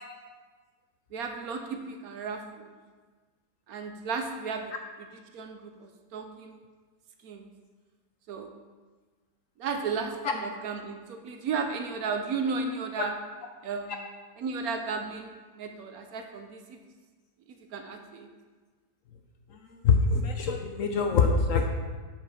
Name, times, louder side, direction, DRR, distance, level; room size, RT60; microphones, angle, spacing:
voice 1, 1.1-2.7 3.7-4.7 5.3-6.5 7.2-7.5 8.3-8.5 9.6-13.1 13.6-14.0 14.4-16.8 17.7-18.3, right 5 dB, 65° right, 5 dB, 1.1 m, -34 dB
voice 2, 19.7-21.7, left 5 dB, 65° left, 4 dB, 0.9 m, -24 dB
7.3 x 5.1 x 5.0 m, 1.4 s
omnidirectional pair, 1.8 m